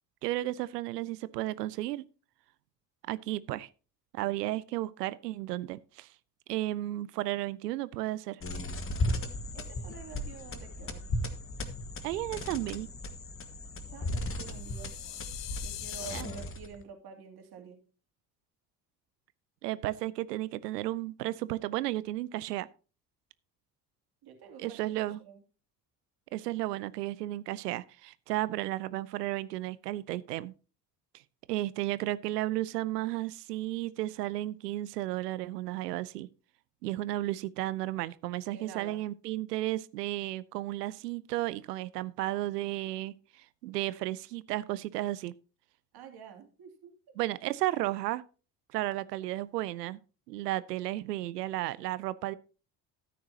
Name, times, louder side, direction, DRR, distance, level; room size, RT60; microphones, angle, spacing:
voice 1, 0.2-2.0 3.1-3.7 4.1-6.1 6.5-8.4 12.0-12.9 16.1-16.3 19.6-22.7 24.6-25.2 26.3-30.5 31.5-36.3 36.8-45.3 47.2-48.2 48.7-50.0 50.3-52.3, right 16 dB, 70° right, 0.6 m, -33 dB
sound 1, 8.4-16.8, left 1 dB, 25° left, 1.6 m, -36 dB
voice 2, 9.5-11.0 13.9-14.9 15.6-17.8 24.2-25.4 38.5-39.0 45.9-46.9, right 7 dB, 45° right, 2.8 m, -48 dB
sound 2, 14.4-16.2, left 14 dB, 70° left, 0.9 m, -42 dB
13.5 x 9.3 x 2.8 m
figure-of-eight pair, 55°, 50 cm